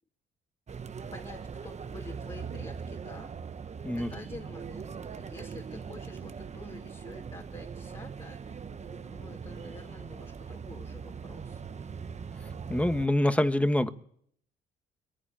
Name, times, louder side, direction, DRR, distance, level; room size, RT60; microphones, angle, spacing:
sound 1, 0.7-13.1, right 6 dB, 35° right, 0.9 m, -41 dB
voice 1, 1.1-3.3 3.7-11.6, left 3 dB, 25° left, -1 dB, 2.7 m, -49 dB
voice 2, 12.7-13.9, left 1 dB, 5° left, 10 dB, 1.4 m, -25 dB
22.0 x 15.0 x 8.8 m, 0.66 s
cardioid pair, 90°, 20 cm